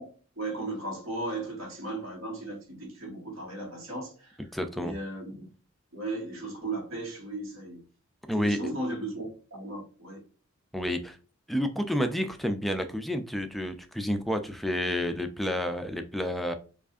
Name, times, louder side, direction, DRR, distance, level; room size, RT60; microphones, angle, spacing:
voice 1, 0.4-4.4 4.7-5.5 5.9-7.8 8.3-10.2, right 2 dB, 65° right, 1.6 m, -36 dB
voice 2, 4.5-4.9 8.3-8.6 10.7-11.2 11.5-16.5, equal, ahead, 0.3 m, -30 dB
4.7 x 2.4 x 2.5 m
head